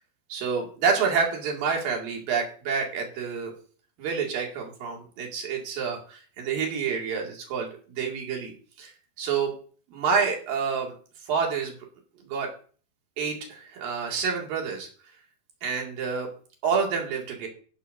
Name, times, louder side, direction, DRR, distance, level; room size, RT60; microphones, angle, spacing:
voice 1, 0.3-3.5 4.0-7.7 8.0-8.5 8.8-8.9 9.2-9.5 9.9-10.9 11.2-11.7 12.2-12.5 13.2-14.9 15.6-16.3 16.6-17.5, right 5 dB, 70° right, 0 dB, 4.0 m, -28 dB
13.0 x 12.0 x 2.7 m, 0.42 s
omnidirectional pair, 4.3 m